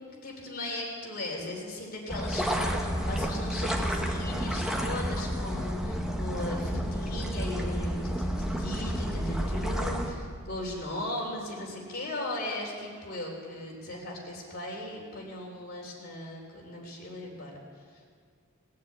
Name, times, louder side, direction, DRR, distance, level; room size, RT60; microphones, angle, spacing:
voice 1, 0.0-17.6, left 1 dB, 45° left, -1 dB, 3.5 m, -37 dB
sound 1, 2.1-10.1, equal, 5° right, 1.2 m, -30 dB
19.5 x 7.5 x 8.7 m, 2.1 s
head